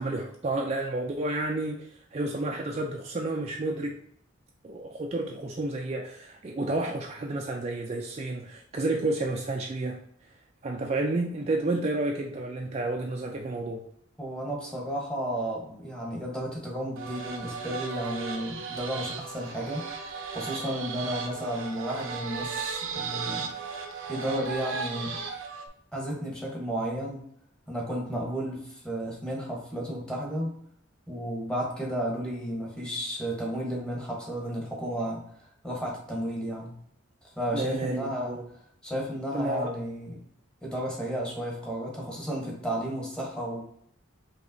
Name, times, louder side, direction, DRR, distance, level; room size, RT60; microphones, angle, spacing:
voice 1, 0.0-4.0 4.6-10.0 10.6-13.8 37.5-38.4 39.3-39.7, right 2 dB, 30° right, 1 dB, 0.3 m, -30 dB
voice 2, 14.2-19.8 20.3-23.5 24.1-25.2 25.9-27.3 27.7-30.6 31.1-36.8 37.2-40.2 40.6-43.6, equal, 5° left, -2 dB, 1.0 m, -33 dB
sound 1, 17.0-25.7, right 5 dB, 80° right, 0.6 m, -36 dB
5.0 x 2.8 x 2.6 m, 0.68 s
head